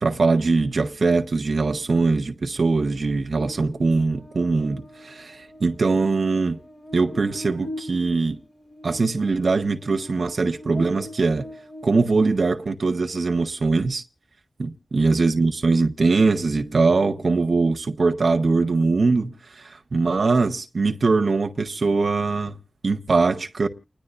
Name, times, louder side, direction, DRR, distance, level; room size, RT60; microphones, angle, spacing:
voice 1, 0.0-6.6 6.9-8.4 8.8-11.5 11.8-14.0 14.6-22.5 22.8-23.7, right 3 dB, 75° right, 0.7 m, -22 dB
Buzz, 3.3-12.8, left 1 dB, 55° left, 2.0 m, -42 dB
30.0 x 10.5 x 2.4 m
wide cardioid pair, 75°, 0 cm